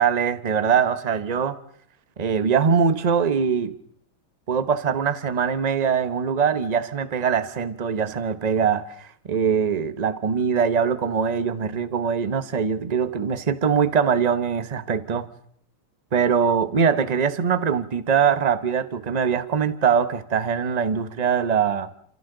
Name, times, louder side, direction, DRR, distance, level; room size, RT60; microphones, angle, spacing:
voice 1, 0.0-1.6 2.2-3.7 4.5-15.3 16.1-21.9, right 6 dB, 35° right, 0.6 m, -22 dB
29.5 x 27.5 x 3.9 m
omnidirectional pair, 2.2 m